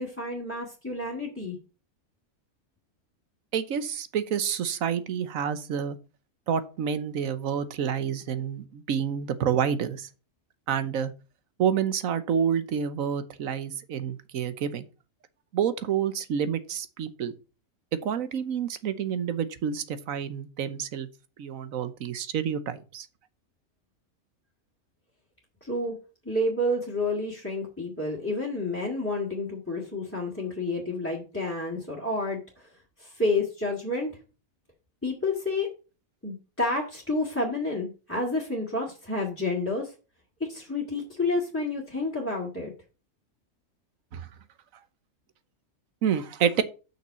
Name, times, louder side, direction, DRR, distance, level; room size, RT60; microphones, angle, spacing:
voice 1, 0.0-1.6 25.6-26.0 26.2-32.7 33.0-34.2 35.0-35.7 36.2-39.9 40.4-42.7, left 2 dB, 10° left, 2.1 m, -29 dB
voice 2, 3.5-6.0 6.5-10.1 10.7-11.1 11.6-14.9 15.5-17.3 18.0-21.1 21.4-23.1 44.1-44.3 46.0-46.6, right 8 dB, 80° right, 1.3 m, -28 dB
6.2 x 5.7 x 6.9 m
omnidirectional pair, 1.4 m